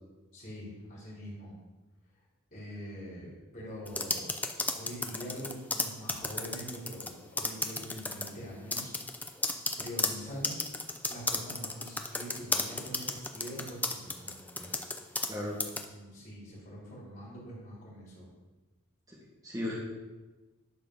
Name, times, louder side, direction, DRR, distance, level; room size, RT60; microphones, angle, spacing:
voice 1, 0.3-1.6 2.5-4.3 4.7-8.9 9.8-10.6 11.1-14.8 15.9-18.3, equal, 45° left, -6 dB, 3.7 m, -44 dB
sound 1, 3.9-7.1 7.4-8.3 8.7-15.3 15.6-15.8, left 2 dB, 5° left, 0.6 m, -33 dB
voice 2, 19.1-19.7, left 1 dB, 15° right, -6 dB, 2.4 m, -36 dB
11.0 x 5.0 x 6.3 m, 1.2 s
head